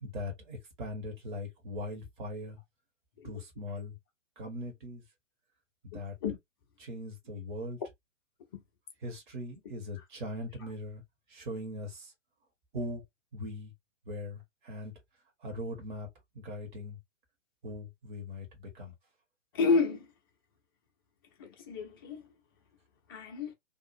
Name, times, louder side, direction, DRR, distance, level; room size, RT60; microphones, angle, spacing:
voice 1, 0.0-2.6 3.2-4.0 4.4-5.0 5.9-6.1 6.8-7.8 9.0-11.0 11.3-12.1 12.7-13.0 13.3-13.7 14.0-14.9 15.4-16.1 16.3-17.0 17.6-18.9, left 1 dB, 40° right, 1.4 m, -40 dB
voice 2, 19.5-20.1 21.4-22.2 23.1-23.5, left 4 dB, 20° left, 0.5 m, -30 dB
2.8 x 2.4 x 2.6 m
figure-of-eight pair, 125°, 38 cm